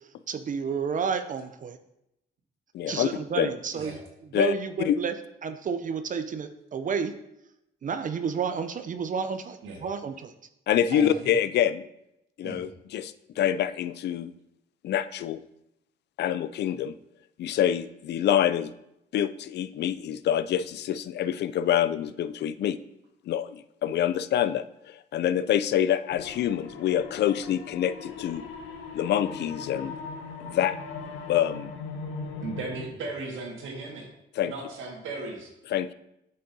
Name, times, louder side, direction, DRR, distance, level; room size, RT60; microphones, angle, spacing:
voice 1, 0.3-1.8 2.9-4.0 4.3-5.1 5.4-7.1 7.8-10.3, right 6 dB, 40° right, 9 dB, 0.5 m, -30 dB
voice 2, 2.7-3.1 3.4-3.5 4.3-5.0 10.7-11.8 12.4-14.3 14.8-15.4 16.2-16.9 17.4-18.7 19.1-22.8 23.3-28.4 28.9-29.9 30.4-30.8 31.3-31.7 34.4-34.5 35.7-35.9, left 10 dB, 60° left, 14 dB, 0.4 m, -26 dB
voice 3, 10.9-11.3 12.4-12.7 32.4-34.1 34.4-35.5, right 3 dB, 80° right, 0 dB, 1.8 m, -36 dB
sound 1, 26.1-32.9, left 4 dB, 85° left, 0.9 m, -39 dB
8.7 x 5.5 x 2.7 m, 0.84 s
cardioid pair, 90°, 20 cm